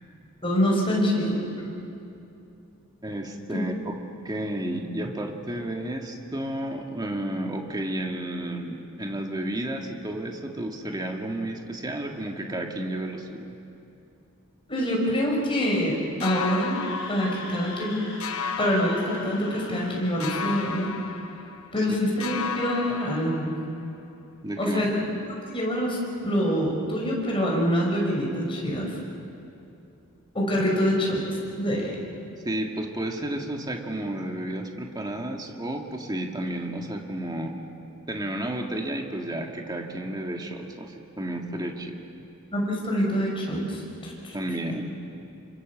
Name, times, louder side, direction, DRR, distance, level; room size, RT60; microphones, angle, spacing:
voice 1, 0.4-1.4 3.5-3.6 14.7-16.8 17.1-18.0 18.6-20.9 21.7-23.5 24.6-24.9 25.5-28.9 30.3-31.2 31.6-31.9 42.5-44.3, equal, 25° left, -2 dB, 5.9 m, -25 dB
voice 2, 3.0-4.0 4.2-13.5 21.8-21.9 24.4-24.8 32.4-37.6 38.1-42.0 44.3-44.9, right 1 dB, 20° right, 2 dB, 2.0 m, -32 dB
sound 1, 16.2-17.9 18.2-19.9 20.2-21.9 22.2-23.9, left 6 dB, 85° left, 1.2 m, -34 dB
Screaming, 16.5-20.9, left 2 dB, 55° left, 8.0 m, -41 dB
29.0 x 25.0 x 7.4 m, 2.8 s
head